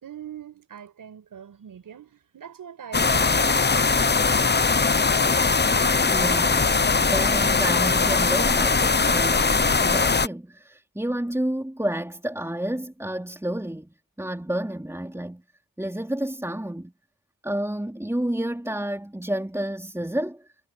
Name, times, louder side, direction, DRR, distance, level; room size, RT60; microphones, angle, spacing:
voice 1, 0.0-4.1, right 8 dB, 85° right, 5.5 m, -42 dB
sound 1, 2.9-10.3, left 4 dB, 30° left, 1.1 m, -20 dB
voice 2, 6.1-15.4 15.8-16.9 17.4-20.5, right 1 dB, 10° right, 3.6 m, -30 dB
cardioid pair, 45°, 32 cm